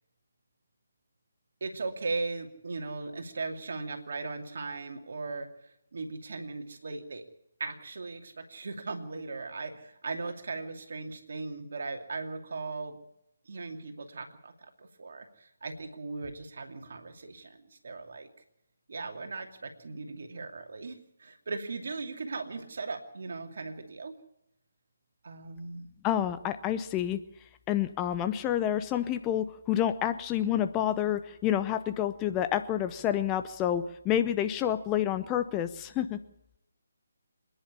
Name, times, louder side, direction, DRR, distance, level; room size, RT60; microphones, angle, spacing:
voice 1, 1.6-7.2 7.6-13.0 13.5-18.3 18.9-24.1 25.2-25.9, right 3 dB, 55° right, 4 dB, 2.6 m, -38 dB
voice 2, 26.0-27.2 27.7-36.2, left 11 dB, 15° left, 10 dB, 0.7 m, -29 dB
26.0 x 10.5 x 9.9 m, 0.82 s
figure-of-eight pair, 145°, 0 cm